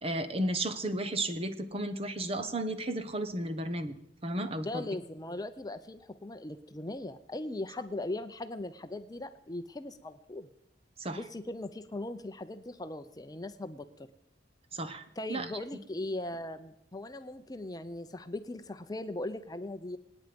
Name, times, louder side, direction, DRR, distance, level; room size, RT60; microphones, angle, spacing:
voice 1, 0.0-4.0 4.2-4.8 11.0-11.2 14.7-15.5, right 1 dB, 35° right, 9 dB, 1.1 m, -33 dB
voice 2, 4.6-10.5 11.1-14.1 15.2-20.0, left 2 dB, 20° left, 10 dB, 0.7 m, -39 dB
26.0 x 9.6 x 5.2 m, 0.77 s
head